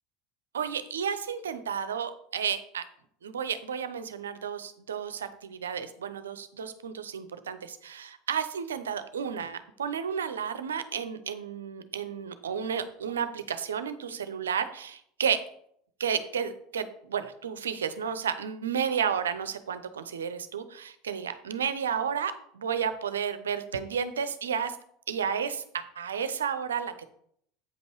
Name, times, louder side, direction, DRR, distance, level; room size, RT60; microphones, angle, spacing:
voice 1, 0.5-2.8 3.2-15.4 16.0-24.8 25.1-27.1, right 7 dB, 80° right, 11 dB, 0.7 m, -32 dB
8.4 x 5.4 x 4.5 m, 0.67 s
hypercardioid pair, 75°, 0 cm